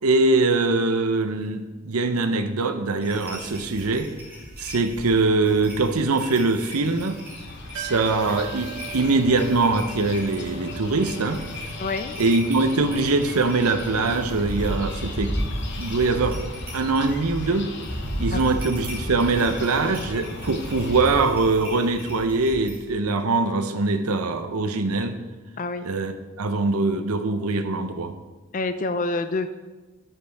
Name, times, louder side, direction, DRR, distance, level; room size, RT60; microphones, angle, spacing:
voice 1, 0.0-4.1 4.6-7.2 7.8-11.4 12.2-15.3 15.8-16.4 16.7-17.7 18.2-25.2 25.8-28.1, right 3 dB, 85° right, 8 dB, 0.8 m, -22 dB
sound 1, 3.0-22.8, equal, 10° right, 3.3 m, -36 dB
sound 2, 6.2-21.2, left 2 dB, 50° left, 1.0 m, -38 dB
sound 3, 7.7-19.4 19.6-19.7, right 8 dB, 60° right, 2.4 m, -44 dB
voice 2, 11.8-12.2 18.3-18.5 25.6-25.9 28.5-29.5, left 3 dB, 35° left, 10 dB, 0.4 m, -27 dB
9.7 x 9.1 x 3.5 m, 1.2 s
head